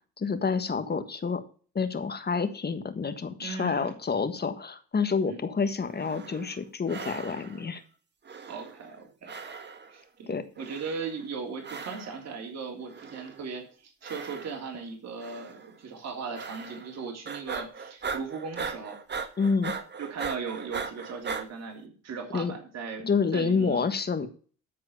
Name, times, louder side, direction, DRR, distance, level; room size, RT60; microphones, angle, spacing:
voice 1, 0.2-1.4 1.7-7.8 10.3-10.4 19.4-19.7 22.3-22.5 23.0-24.3, left 5 dB, 35° left, 10 dB, 1.5 m, -28 dB
voice 2, 3.4-3.9 5.2-5.4 8.5-9.3 9.9-19.0 20.0-23.0 23.3-23.9, right 5 dB, 60° right, 1 dB, 3.2 m, -38 dB
sound 1, 5.9-6.6 6.9-7.7 8.2-9.0 9.3-10.0 10.6-11.2 11.6-12.3 12.9-13.5 14.0-14.8 15.2-15.7 16.3-17.0 17.2-21.5, right 5 dB, 35° right, 1.5 m, -39 dB
13.0 x 4.8 x 7.1 m, 0.41 s
cardioid pair, 90°, 30 cm